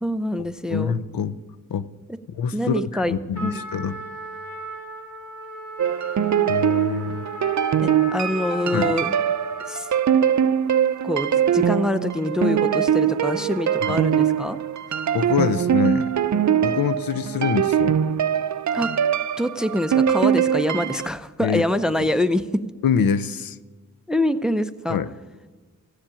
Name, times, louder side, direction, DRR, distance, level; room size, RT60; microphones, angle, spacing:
voice 1, 0.0-0.9 2.5-3.2 3.4-3.6 7.8-9.1 9.7-9.9 11.0-14.6 18.7-18.9 19.4-22.6 24.1-25.0, left 1 dB, ahead, 12 dB, 0.5 m, -25 dB
voice 2, 0.7-1.4 1.7-1.9 2.3-4.0 6.5-7.2 8.7-8.9 13.8-14.0 15.1-16.1 16.6-18.0 21.4-21.6 21.9-22.1 22.8-23.6 24.9-25.1, left 7 dB, 85° left, 15 dB, 0.6 m, -25 dB
Trumpet, 3.3-9.9, equal, 60° left, 3.3 m, -36 dB
sound 1, 5.8-21.1, right 9 dB, 55° right, 0.5 m, -22 dB
15.0 x 7.3 x 8.9 m, 1.4 s
wide cardioid pair, 95°, 34 cm